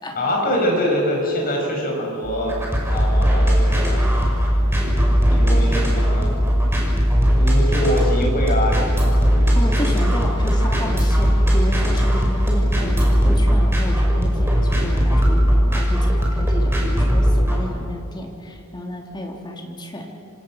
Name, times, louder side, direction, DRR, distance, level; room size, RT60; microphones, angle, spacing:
voice 1, 0.1-4.0 5.3-6.4 7.4-9.9, equal, 40° left, 0 dB, 6.4 m, -24 dB
sound 1, 2.2-17.6, equal, 10° right, 6.0 m, -18 dB
voice 2, 9.5-20.1, equal, 20° left, 0 dB, 3.5 m, -31 dB
27.0 x 25.5 x 6.5 m, 2.5 s
head